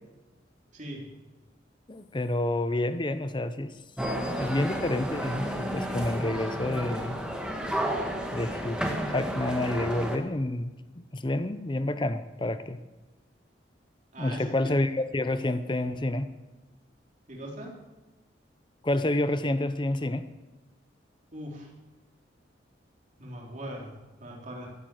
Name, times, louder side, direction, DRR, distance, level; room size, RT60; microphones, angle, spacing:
voice 1, 0.7-1.1 14.1-14.5 17.3-17.8 21.3-21.7 23.2-24.7, equal, 40° right, -1 dB, 3.7 m, -40 dB
voice 2, 1.9-3.8 4.3-7.2 8.3-12.8 14.2-16.3 18.8-20.3, left 1 dB, 25° left, 11 dB, 0.6 m, -29 dB
sound 1, 4.0-10.2, equal, 5° right, 1.7 m, -32 dB
15.5 x 8.7 x 7.8 m, 1.1 s
head